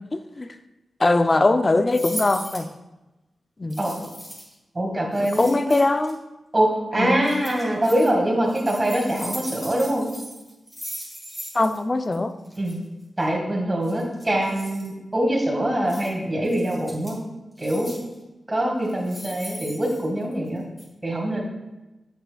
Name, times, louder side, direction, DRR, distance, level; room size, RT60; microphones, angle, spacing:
voice 1, 1.0-2.7 3.6-3.8 5.4-6.2 7.0-7.3 11.5-12.3, left 2 dB, 35° left, 9 dB, 0.5 m, -21 dB
sound 1, 1.9-2.7 3.7-4.5 5.1-6.1 7.2-8.1 8.5-11.8 12.0-12.1 12.4-12.7 13.8-14.9 15.9-16.1 16.4-17.2 17.6-18.1 18.8-20.5 20.8-20.9, equal, 10° left, 2.4 m, -38 dB
voice 2, 4.7-5.7 6.5-10.0 12.6-12.8 13.2-17.1 17.6-17.9 18.5-20.6 21.0-21.4, right 1 dB, 25° right, -1 dB, 1.7 m, -24 dB
7.6 x 7.0 x 2.3 m, 1.0 s
cardioid pair, 65°, 0 cm